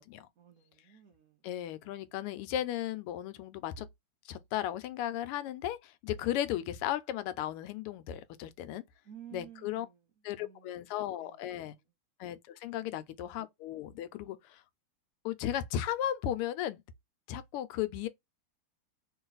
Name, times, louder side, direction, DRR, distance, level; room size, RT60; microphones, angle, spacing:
voice 1, 0.4-2.0 6.1-6.3 9.0-10.0 10.4-10.9 11.1-11.7 12.8-13.1 14.1-14.3, right 10 dB, 75° right, 0.8 m, -54 dB
voice 2, 1.4-3.9 4.2-8.8 9.3-9.9 10.2-11.8 12.2-14.6 15.2-16.8 17.3-18.1, left 11 dB, 90° left, 1.5 m, -35 dB
3.2 x 3.0 x 3.8 m
omnidirectional pair, 2.4 m